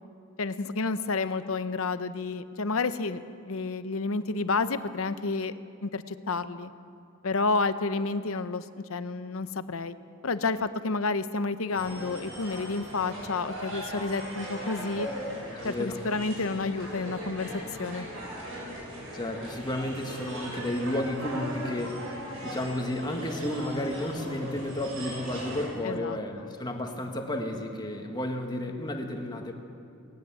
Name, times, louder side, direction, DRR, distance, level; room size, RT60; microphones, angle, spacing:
voice 1, 0.4-5.5 5.8-6.7 7.2-8.6 8.9-9.9 10.2-15.1 15.6-17.5 17.8-18.1 25.8-26.5, left 3 dB, 70° left, 12 dB, 0.8 m, -30 dB
sound 1, 11.7-25.7, equal, 70° right, 7.4 m, -38 dB
voice 2, 15.5-16.0 19.1-29.5, left 1 dB, 20° left, 3 dB, 1.8 m, -32 dB
19.0 x 18.5 x 7.7 m, 2.4 s
head